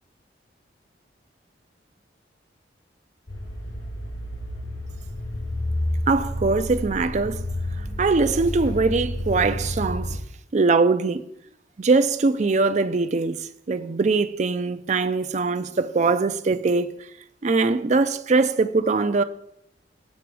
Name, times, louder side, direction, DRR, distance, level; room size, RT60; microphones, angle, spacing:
sound 1, 3.3-10.2, left 1 dB, 80° left, 3.4 m, -30 dB
voice 1, 6.1-7.4 8.0-10.2 10.5-11.2 11.8-16.9 17.4-19.2, right 3 dB, 40° right, 0.4 m, -22 dB
8.3 x 6.9 x 4.7 m
head